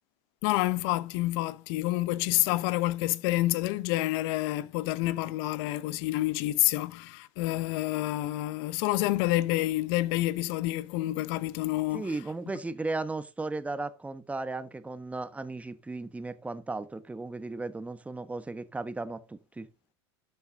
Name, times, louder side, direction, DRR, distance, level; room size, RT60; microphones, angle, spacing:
voice 1, 0.4-12.1, left 17 dB, 60° left, 0.9 m, -28 dB
voice 2, 11.9-19.7, right 3 dB, 10° right, 1.2 m, -36 dB
12.5 x 7.2 x 3.7 m
hypercardioid pair, 95°, 14 cm